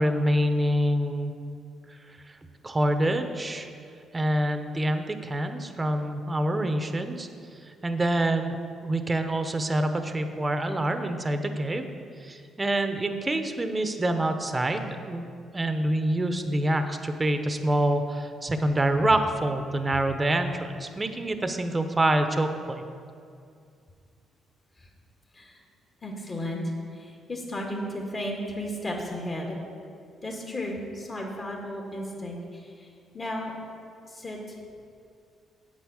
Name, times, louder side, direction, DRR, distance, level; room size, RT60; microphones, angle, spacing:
voice 1, 0.0-1.3 2.6-3.7 4.1-7.3 7.8-8.6 8.8-11.9 12.2-15.3 15.5-22.9, right 1 dB, 20° right, 7 dB, 0.8 m, -26 dB
voice 2, 26.0-26.6 26.9-29.6 30.2-32.9 33.1-33.5 34.1-34.4, left 1 dB, 35° left, -1 dB, 1.9 m, -34 dB
8.2 x 8.1 x 6.4 m, 2.4 s
cardioid pair, 90°, 0 cm